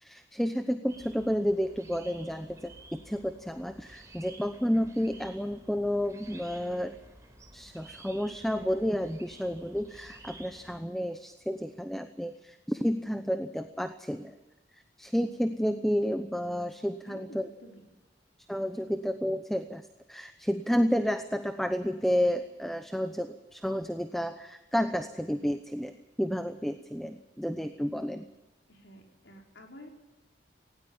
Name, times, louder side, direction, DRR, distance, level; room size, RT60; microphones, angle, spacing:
voice 1, 0.0-7.0 7.5-14.3 15.0-17.5 18.5-28.2, equal, ahead, 8 dB, 0.8 m, -31 dB
sound 1, 0.9-10.8, right 2 dB, 15° right, 4.5 m, -52 dB
voice 2, 17.0-17.9 28.7-29.9, left 1 dB, 85° left, 1 dB, 5.1 m, -50 dB
19.0 x 17.5 x 8.9 m, 1.1 s
head